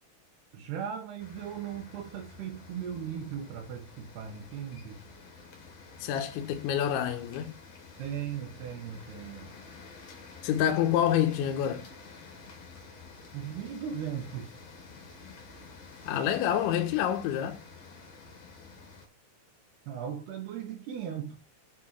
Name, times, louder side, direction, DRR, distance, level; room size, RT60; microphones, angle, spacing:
voice 1, 0.5-5.0 8.0-9.5 13.3-14.6 19.9-21.4, right 8 dB, 70° right, 2.8 m, -38 dB
sound 1, 1.2-19.1, left 4 dB, 50° left, 2.1 m, -50 dB
voice 2, 6.0-7.5 10.4-11.8 16.0-17.6, left 10 dB, 75° left, 3.3 m, -27 dB
9.9 x 4.5 x 4.5 m
omnidirectional pair, 5.9 m